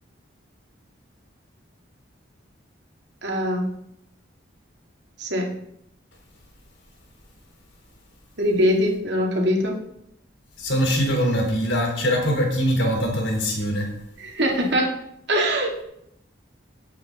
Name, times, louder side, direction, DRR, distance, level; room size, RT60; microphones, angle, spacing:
voice 1, 3.2-3.7 5.2-5.5 8.4-9.7 14.2-15.0 15.3-15.8, equal, 60° right, 0 dB, 2.4 m, -22 dB
voice 2, 10.6-13.9, equal, 70° left, 1 dB, 3.7 m, -22 dB
17.5 x 8.5 x 3.9 m, 0.77 s
head